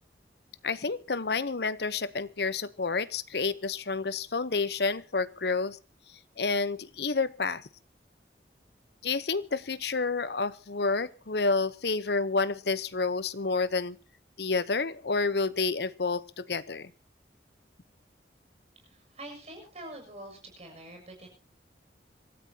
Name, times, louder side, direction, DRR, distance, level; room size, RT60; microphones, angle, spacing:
voice 1, 0.6-5.8 6.4-7.7 9.0-14.0 14.4-16.9, left 4 dB, 65° left, 16 dB, 0.8 m, -29 dB
voice 2, 18.8-21.3, right 1 dB, 35° right, 3 dB, 7.0 m, -45 dB
26.5 x 13.5 x 2.8 m, 0.34 s
head